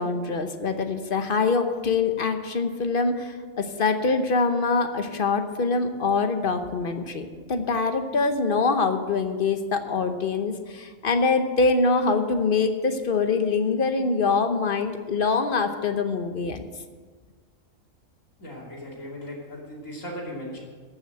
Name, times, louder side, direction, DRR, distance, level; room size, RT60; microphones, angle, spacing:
voice 1, 0.0-16.6, left 4 dB, 45° left, 7 dB, 1.0 m, -24 dB
voice 2, 18.4-20.6, equal, 75° left, -3 dB, 3.2 m, -37 dB
14.0 x 6.3 x 7.7 m, 1.5 s
omnidirectional pair, 1.4 m